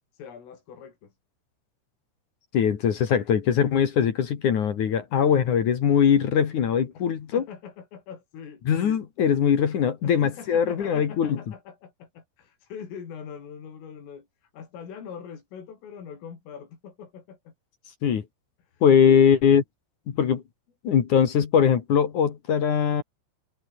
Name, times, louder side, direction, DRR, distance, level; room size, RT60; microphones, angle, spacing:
voice 1, 0.1-1.1 6.9-8.6 10.0-17.5 18.7-19.4, left 7 dB, 80° left, 7.5 m, -43 dB
voice 2, 2.5-7.4 8.7-11.4 18.0-18.2 18.8-19.6 20.1-20.4 20.8-23.0, left 8 dB, 50° left, 2.6 m, -21 dB
omnidirectional pair, 5.7 m